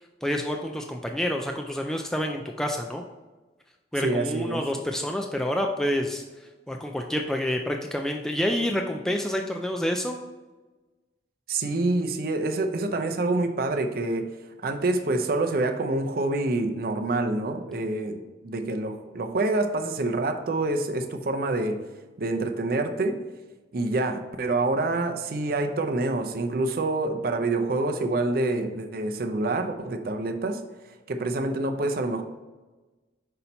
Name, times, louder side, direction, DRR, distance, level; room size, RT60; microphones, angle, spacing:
voice 1, 0.2-3.0 3.9-6.2 6.7-10.2, left 1 dB, 5° left, 2 dB, 0.3 m, -28 dB
voice 2, 4.0-4.6 11.5-14.3 14.6-21.8 22.2-23.2 23.7-30.6 31.1-32.2, right 2 dB, 55° right, 5 dB, 0.5 m, -27 dB
5.5 x 4.1 x 4.2 m, 1.2 s
head